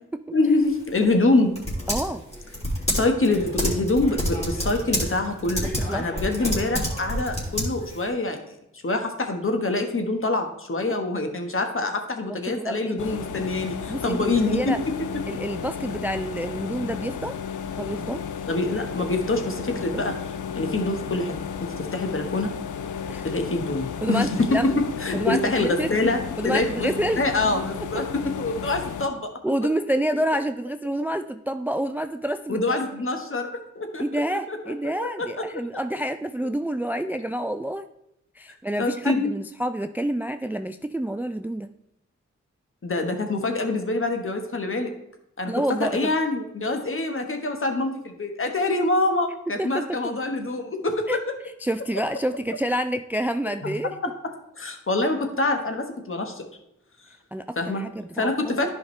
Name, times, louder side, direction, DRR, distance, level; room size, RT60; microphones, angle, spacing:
voice 1, 0.3-1.5 3.0-8.6 8.8-14.7 18.5-20.1 20.5-21.3 21.6-22.5 23.2-26.9 27.2-29.3 32.5-34.7 35.0-35.3 38.8-39.3 42.8-44.9 45.4-45.5 45.8-51.3 53.6-53.7 54.6-56.4 57.6-57.8 58.2-58.7, left 2 dB, 45° left, 5 dB, 1.3 m, -25 dB
Typing, 0.6-8.1, equal, 20° left, 2.9 m, -29 dB
voice 2, 1.0-1.4 1.9-2.2 5.8-6.1 10.9-11.0 12.3-13.2 13.9-14.8 15.3-17.4 17.8-18.2 19.7-20.1 23.1-23.3 24.0-24.7 25.1-25.9 26.4-27.2 29.4-33.0 34.0-37.9 38.4-41.7 45.5-46.2 49.6-50.0 51.1-51.2 51.6-53.9 57.3-58.7, right 1 dB, 5° right, 10 dB, 0.3 m, -28 dB
sound 1, 13.0-29.1, left 7 dB, 90° left, 0.5 m, -33 dB
11.0 x 5.1 x 3.2 m, 0.81 s
cardioid pair, 40°, 29 cm